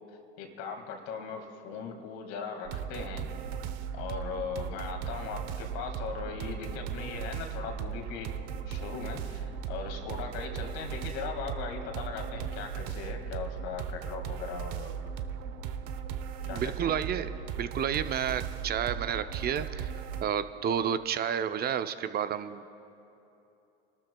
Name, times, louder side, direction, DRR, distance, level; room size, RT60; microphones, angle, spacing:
voice 1, 0.4-3.3 3.9-8.3 8.7-14.9 16.4-17.0, left 5 dB, 65° left, 4 dB, 2.0 m, -39 dB
sound 1, 2.6-20.2, right 7 dB, 65° right, 0.8 m, -37 dB
voice 2, 16.5-17.3 17.6-19.9 20.2-22.7, right 9 dB, 35° right, 11 dB, 0.5 m, -31 dB
27.5 x 12.5 x 2.3 m, 2.9 s
hypercardioid pair, 95°, 29 cm